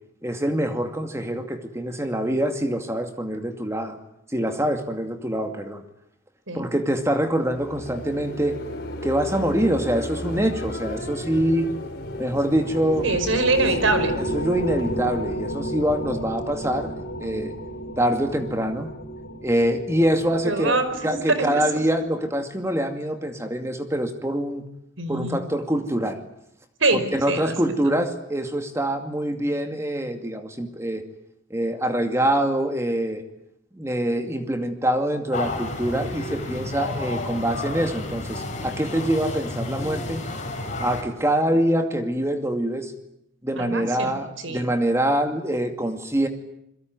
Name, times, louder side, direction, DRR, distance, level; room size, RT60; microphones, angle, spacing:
voice 1, 0.2-4.0 4.3-5.8 6.5-8.6 9.0-11.7 12.2-13.1 14.2-16.9 17.2-17.5 18.0-18.9 19.4-20.8 21.0-24.6 25.1-26.2 27.1-31.1 31.5-33.2 33.7-40.2 40.8-42.9 43.4-46.3, right 1 dB, 15° right, 5 dB, 2.4 m, -25 dB
sound 1, 7.3-16.3, left 1 dB, 50° left, 4.5 m, -35 dB
sound 2, 12.1-21.9, right 1 dB, 85° left, 4.1 m, -32 dB
voice 2, 13.0-14.1 20.4-21.6 25.0-25.4 26.8-27.5 43.6-44.1 44.4-44.7, right 2 dB, 85° right, 11 dB, 4.9 m, -24 dB
sound 3, 35.3-41.0, left 2 dB, 35° left, 5.9 m, -31 dB
27.5 x 22.5 x 9.5 m, 0.78 s
head